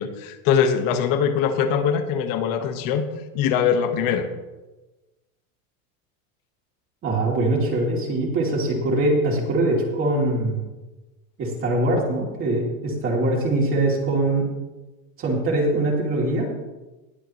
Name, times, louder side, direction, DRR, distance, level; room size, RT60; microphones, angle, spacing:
voice 1, 0.0-3.1 3.3-4.3, left 7 dB, 50° left, 7 dB, 1.6 m, -22 dB
voice 2, 7.0-10.6 11.4-14.5 15.2-16.5, right 2 dB, 30° right, -3 dB, 3.1 m, -22 dB
20.0 x 8.1 x 3.2 m, 1.1 s
supercardioid pair, 140°, 42 cm